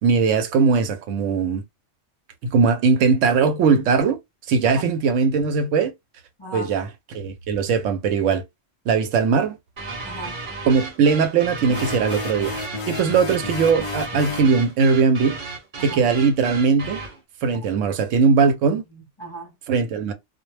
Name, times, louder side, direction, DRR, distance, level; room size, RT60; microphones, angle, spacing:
voice 1, 0.0-1.6 2.5-4.2 4.5-5.9 6.5-8.4 8.9-9.6 10.6-12.6 12.9-15.4 15.8-17.0 17.4-18.8 19.7-20.1, right 5 dB, 85° right, 0.9 m, -20 dB
voice 2, 6.4-6.8 10.0-10.4 15.8-16.0 17.6-17.7 18.6-19.6, equal, 25° left, 0.7 m, -38 dB
sound 1, 9.8-17.2, right 3 dB, 45° right, 0.9 m, -34 dB
sound 2, 11.7-14.5, left 4 dB, 60° left, 0.3 m, -32 dB
2.3 x 2.0 x 3.1 m
omnidirectional pair, 1.2 m